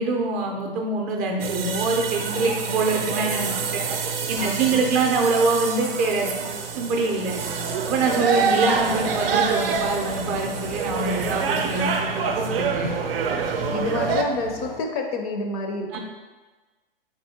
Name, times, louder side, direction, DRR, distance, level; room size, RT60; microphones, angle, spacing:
voice 1, 0.0-3.9 4.3-6.4 6.7-7.3 7.9-12.9 15.9-16.0, right 3 dB, 30° right, 1 dB, 0.5 m, -24 dB
sound 1, 1.4-14.2, right 5 dB, 75° right, 0.5 m, -27 dB
voice 2, 4.4-4.9 8.3-8.5 13.7-16.0, left 2 dB, 40° left, 3 dB, 0.5 m, -29 dB
sound 2, 8.6-14.8, left 1 dB, 85° left, 1.0 m, -38 dB
4.1 x 3.6 x 2.7 m, 1.3 s
hypercardioid pair, 120°, 29 cm